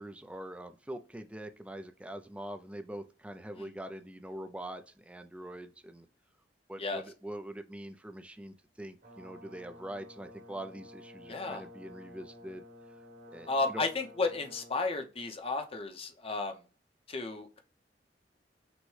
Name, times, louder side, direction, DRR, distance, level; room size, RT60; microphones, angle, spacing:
voice 1, 0.0-6.1 6.7-12.6 13.3-13.8, right 1 dB, 5° right, 7 dB, 0.4 m, -43 dB
Brass instrument, 9.0-14.8, left 1 dB, 70° right, 2.4 m, -52 dB
voice 2, 11.3-11.6 13.5-16.6 17.1-17.6, left 3 dB, 35° left, 6 dB, 0.7 m, -33 dB
6.1 x 2.1 x 3.2 m, 0.34 s
head